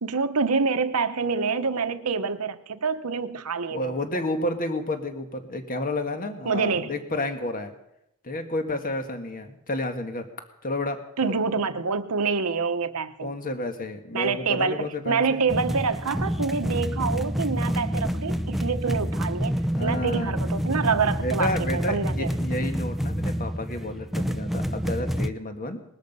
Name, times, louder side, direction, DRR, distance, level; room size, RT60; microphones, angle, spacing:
voice 1, 0.0-3.9 6.5-6.9 11.2-13.3 14.1-22.3, right 5 dB, 75° right, 10 dB, 1.0 m, -26 dB
voice 2, 3.7-7.7 8.2-10.3 10.6-11.3 13.2-15.4 19.7-20.5 21.2-25.8, left 1 dB, 40° left, 7 dB, 1.7 m, -31 dB
sound 1, 15.5-25.3, equal, ahead, 0.6 m, -28 dB
20.0 x 13.0 x 5.5 m, 0.84 s
head